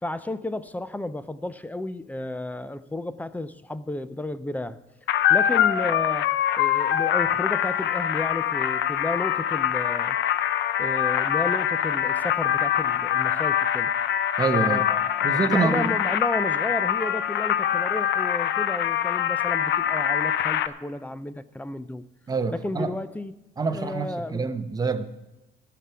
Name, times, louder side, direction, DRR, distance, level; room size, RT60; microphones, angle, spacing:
voice 1, 0.0-4.8 5.3-6.3 6.6-10.2 10.8-13.9 14.5-22.0 22.5-23.3 23.7-24.5, left 2 dB, 10° left, 0.5 m, -32 dB
sound 1, 5.1-20.7, left 10 dB, 70° left, 0.7 m, -24 dB
voice 2, 14.4-14.9 15.2-15.9 22.3-22.9 23.6-25.1, right 4 dB, 20° right, 0.9 m, -26 dB
13.5 x 5.9 x 9.4 m
cardioid pair, 135°, 19 cm